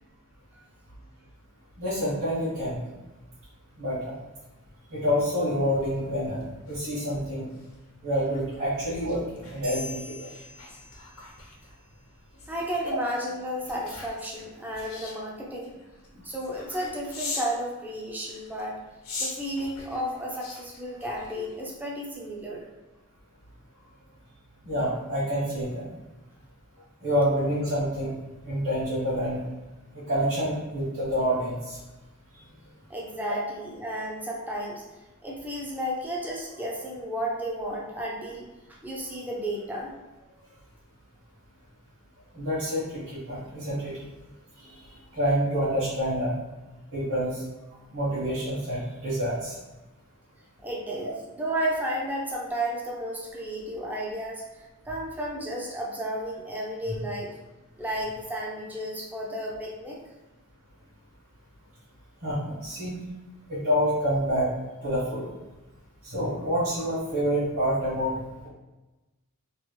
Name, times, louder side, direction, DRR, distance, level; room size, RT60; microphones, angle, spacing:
voice 1, 1.8-2.9 3.8-4.1 4.9-7.4 8.0-10.1 24.6-25.9 27.0-28.1 28.4-29.4 29.9-31.8 42.3-44.0 44.6-44.7 45.1-46.3 46.9-47.4 47.9-49.5 62.2-62.9 63.5-64.5 64.8-65.3 66.0-68.5, equal, 60° right, -11 dB, 1.4 m, -27 dB
sound 1, 6.4-17.6 18.2-21.8 22.2-22.5, left 3 dB, 75° left, 0.9 m, -42 dB
sound 2, 9.6-11.5, left 2 dB, 85° right, 0.9 m, -42 dB
voice 2, 12.5-15.8 16.1-18.8 19.2-22.6 32.9-34.8 35.2-38.5 38.8-39.9 50.6-54.4 54.9-57.3 57.8-60.0, equal, 10° right, -3 dB, 0.4 m, -33 dB
3.2 x 2.4 x 3.0 m, 1.1 s
head